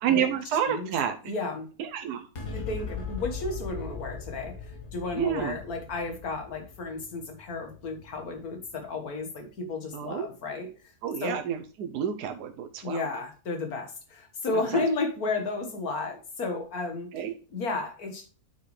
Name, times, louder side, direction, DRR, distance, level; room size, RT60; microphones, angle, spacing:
voice 1, 0.0-1.2 1.8-2.3 5.2-5.6 9.9-10.3 11.0-13.1 14.7-14.8 17.1-17.3, right 9 dB, 80° right, 6 dB, 1.3 m, -29 dB
voice 2, 1.2-1.7 2.5-10.7 11.2-11.4 12.8-17.1 17.5-18.3, left 3 dB, 65° left, 5 dB, 2.1 m, -33 dB
sound 1, 2.3-9.0, left 5 dB, 85° left, 2.4 m, -39 dB
8.7 x 5.9 x 3.2 m, 0.37 s
omnidirectional pair, 1.7 m